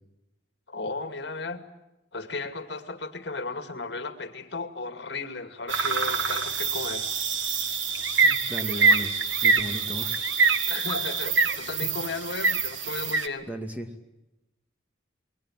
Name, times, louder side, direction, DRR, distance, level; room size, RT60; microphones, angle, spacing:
voice 1, 0.7-1.6 2.1-7.1 10.7-13.5, left 3 dB, 65° left, 8 dB, 2.3 m, -35 dB
sound 1, 5.7-13.3, right 5 dB, 85° right, 1.9 m, -25 dB
voice 2, 8.2-9.1 9.4-10.2 13.5-13.9, right 1 dB, 10° right, 5 dB, 2.2 m, -35 dB
29.5 x 22.0 x 7.5 m, 0.97 s
head